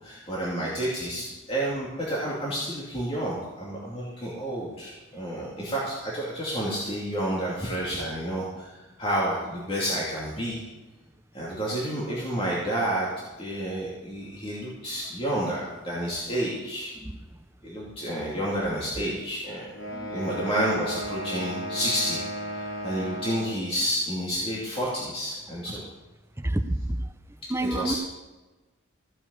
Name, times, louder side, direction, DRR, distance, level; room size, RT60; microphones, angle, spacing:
voice 1, 0.0-10.6 11.3-13.1 13.4-16.9 17.6-19.7 20.1-25.8 27.6-28.0, right 1 dB, 25° left, -6 dB, 2.6 m, -30 dB
sound 1, 19.7-23.6, equal, 70° left, 4.0 m, -35 dB
voice 2, 26.4-27.0 27.5-28.0, right 1 dB, 10° right, 9 dB, 0.6 m, -28 dB
15.0 x 7.0 x 8.2 m, 1.2 s
head